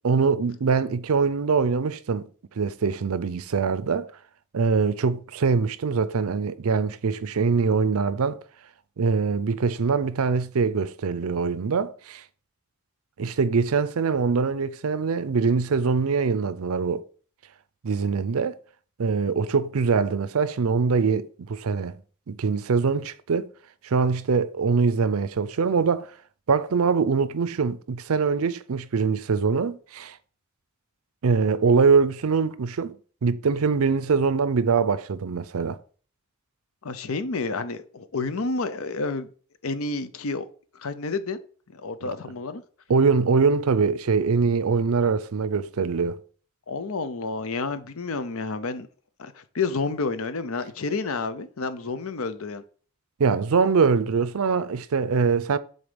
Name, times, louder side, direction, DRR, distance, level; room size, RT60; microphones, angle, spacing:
voice 1, 0.0-2.3 2.6-4.1 4.5-8.4 9.0-12.2 13.2-17.0 17.8-18.6 19.0-22.0 22.3-23.5 23.8-26.1 26.5-30.2 31.2-35.8 42.0-42.1 42.9-46.2 53.2-55.6, right 5 dB, 70° right, 0.5 m, -23 dB
voice 2, 36.8-39.3 39.6-40.5 40.8-41.4 41.7-42.6 46.7-48.9 49.2-52.6, left 3 dB, 65° left, 0.7 m, -30 dB
7.1 x 4.1 x 5.1 m
head